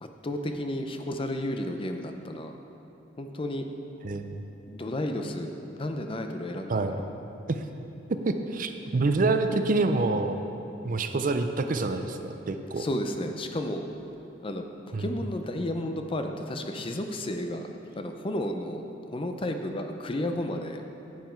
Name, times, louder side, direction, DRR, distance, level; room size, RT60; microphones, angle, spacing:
voice 1, 0.0-2.5 3.2-3.7 4.7-6.9 12.8-13.8 14.4-17.7 18.0-20.8, left 1 dB, 30° left, 5 dB, 0.5 m, -32 dB
voice 2, 4.0-4.4 6.7-7.0 7.5-7.6 8.2-10.4 10.8-12.8 14.9-15.2, right 3 dB, 45° right, 7 dB, 0.5 m, -27 dB
10.5 x 7.4 x 4.5 m, 2.9 s
head